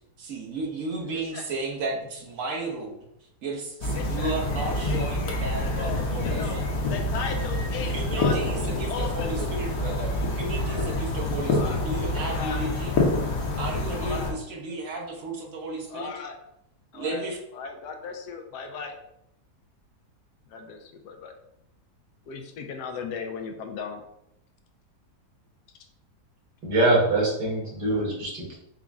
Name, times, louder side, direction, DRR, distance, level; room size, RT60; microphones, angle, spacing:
voice 1, 0.2-3.1 3.4-6.7 7.8-12.9 13.6-16.1 16.9-17.4, right 2 dB, 55° right, -2 dB, 1.3 m, -34 dB
voice 2, 1.0-1.5 3.8-4.3 4.8-6.6 6.8-8.3 8.6-9.5 10.7-11.0 11.5-11.8 12.3-12.6 14.0-14.3 15.9-16.3 16.9-17.3 17.5-18.9 20.5-21.3 22.3-24.0, left 5 dB, 80° left, 5 dB, 1.2 m, -37 dB
sound 1, 3.8-14.3, left 2 dB, 65° left, 1.2 m, -27 dB
voice 3, 26.6-28.6, right 2 dB, 90° right, -4 dB, 2.0 m, -23 dB
5.1 x 2.3 x 3.6 m, 0.80 s
omnidirectional pair, 1.7 m